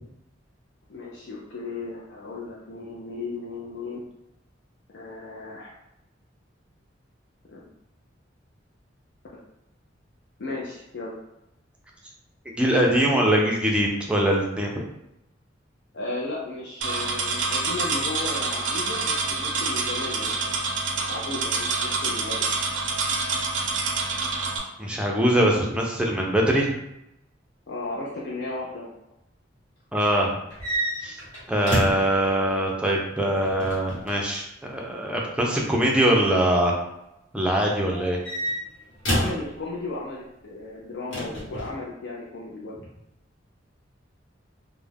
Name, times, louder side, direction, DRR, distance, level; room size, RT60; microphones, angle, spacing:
voice 1, 0.9-4.0 4.9-5.7 7.5-7.6 9.3-9.4 10.4-11.1 15.9-20.5 21.0-22.5 27.7-28.9 39.1-42.8, left 3 dB, 65° left, -5 dB, 0.4 m, -35 dB
voice 2, 12.5-14.8 24.8-26.7 29.9-30.4 31.0-31.2 31.5-36.7 37.3-38.2, right 1 dB, 5° right, -1 dB, 0.4 m, -22 dB
sound 1, 16.8-24.6, right 3 dB, 75° right, 0.4 m, -27 dB
sound 2, 30.5-32.2 33.4-34.2 35.7-36.1 37.9-39.5 41.1-41.8, right 1 dB, 80° left, 1.1 m, -29 dB
2.3 x 2.1 x 3.3 m, 0.87 s
head